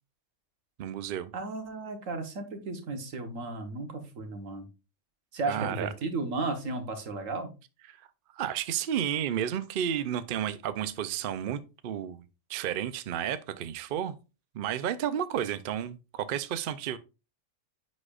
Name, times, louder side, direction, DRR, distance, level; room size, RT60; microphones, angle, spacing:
voice 1, 0.8-1.3 5.5-5.9 8.4-12.2 12.5-14.2 14.5-17.0, right 9 dB, 60° right, 0.6 m, -32 dB
voice 2, 1.3-4.7 5.3-7.5, right 3 dB, 85° right, 1.6 m, -34 dB
9.7 x 4.1 x 2.4 m
omnidirectional pair, 1.3 m